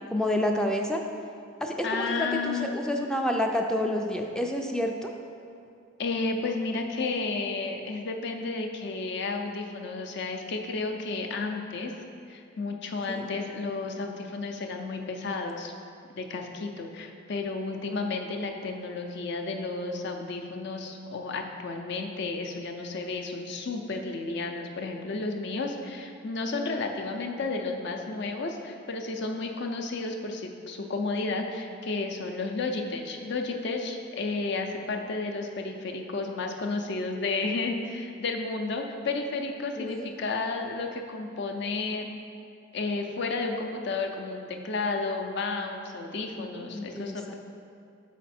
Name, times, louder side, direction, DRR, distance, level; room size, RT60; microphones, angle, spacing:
voice 1, 0.1-1.0 1.6-5.1 13.1-13.3 39.8-40.1 46.4-47.3, left 1 dB, 5° left, 2 dB, 0.3 m, -29 dB
voice 2, 1.8-2.7 6.0-11.9 12.3-15.7 16.2-42.1 42.7-47.3, left 3 dB, 55° left, 3 dB, 0.5 m, -32 dB
6.2 x 5.0 x 4.2 m, 2.5 s
head